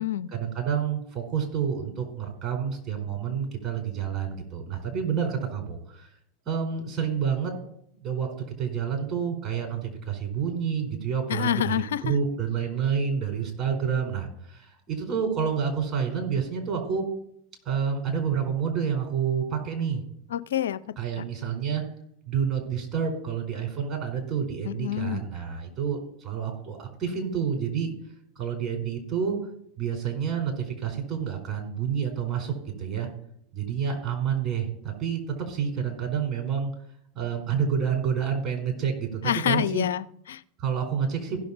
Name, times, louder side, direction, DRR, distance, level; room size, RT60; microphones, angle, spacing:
voice 1, 0.3-6.1 6.5-7.5 7.9-11.7 12.0-17.1 17.6-20.0 21.0-21.8 22.3-27.9 28.4-29.4 29.8-32.5 32.8-33.1 33.5-36.7 37.1-39.8 40.6-41.4, right 7 dB, 35° right, 2 dB, 4.6 m, -29 dB
voice 2, 11.3-12.0 20.3-20.8 21.2-21.3 24.6-25.2 39.2-40.4, left 11 dB, 75° left, 16 dB, 0.5 m, -27 dB
15.5 x 6.4 x 4.3 m, 0.70 s
hypercardioid pair, 90°, 0 cm